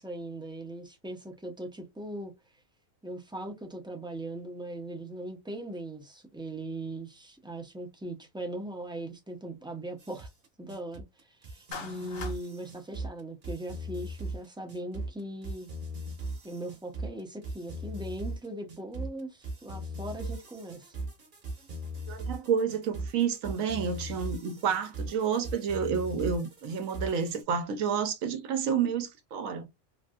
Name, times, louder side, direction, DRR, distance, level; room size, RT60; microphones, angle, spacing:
voice 1, 0.0-2.3 3.0-10.3 10.6-15.7 16.4-20.9, right 1 dB, 5° right, 0.4 m, -39 dB
sound 1, 10.0-27.4, right 1 dB, 45° right, 1.0 m, -39 dB
Clapping, 11.7-12.4, left 5 dB, 60° left, 0.7 m, -40 dB
voice 2, 22.1-29.7, right 7 dB, 75° right, 1.1 m, -30 dB
3.3 x 2.6 x 2.3 m
omnidirectional pair, 1.4 m